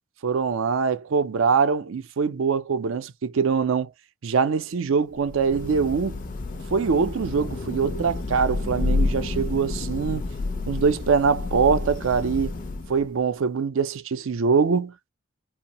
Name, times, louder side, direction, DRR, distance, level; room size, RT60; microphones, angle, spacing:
voice 1, 0.2-3.9 4.2-6.2 6.7-10.3 10.7-12.5 12.9-14.9, right 5 dB, 70° right, 0.4 m, -23 dB
Thunder / Rain, 5.2-13.2, left 3 dB, 40° left, 0.4 m, -30 dB
2.7 x 2.0 x 2.8 m
head